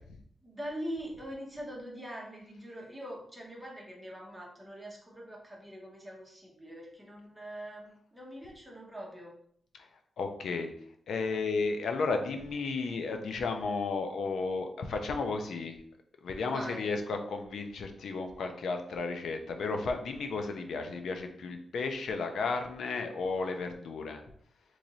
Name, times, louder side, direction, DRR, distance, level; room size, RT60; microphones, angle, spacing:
voice 1, 0.4-9.3 16.4-16.9, equal, 5° right, -3 dB, 0.9 m, -43 dB
voice 2, 10.2-10.7 11.1-15.8 16.2-24.2, left 4 dB, 75° left, 5 dB, 0.5 m, -33 dB
3.1 x 2.5 x 4.0 m, 0.65 s
wide cardioid pair, 175°, 0 cm